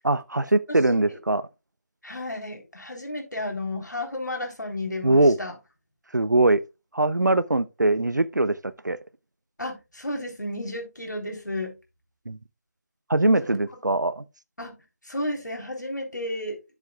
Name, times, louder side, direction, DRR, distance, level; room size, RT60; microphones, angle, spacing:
voice 1, 0.0-1.4 5.0-5.4 6.1-6.6 6.9-8.6 8.8-9.0 12.3-12.4 13.1-14.2, right 2 dB, 85° right, 0.6 m, -21 dB
voice 2, 2.0-5.5 9.6-11.8 14.6-14.7 15.0-16.8, left 1 dB, 80° left, 3.7 m, -32 dB
12.0 x 7.4 x 2.4 m
figure-of-eight pair, 160°, 10 cm